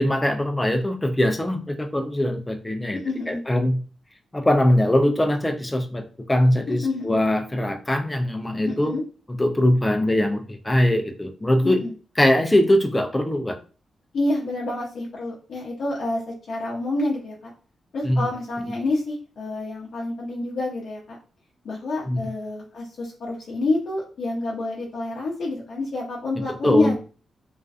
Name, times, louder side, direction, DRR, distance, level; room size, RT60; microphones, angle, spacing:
voice 1, 0.0-3.0 3.3-3.8 4.3-8.9 9.4-11.8 12.2-13.6 18.0-18.3 22.1-22.3 26.4-26.9, left 1 dB, 10° left, 5 dB, 0.3 m, -21 dB
voice 2, 2.9-3.4 6.8-7.2 8.6-9.0 11.6-11.9 14.1-17.5 17.9-21.2 21.6-26.9, left 2 dB, 60° left, -4 dB, 0.6 m, -28 dB
2.4 x 2.3 x 2.3 m, 0.37 s
wide cardioid pair, 170°, 0 cm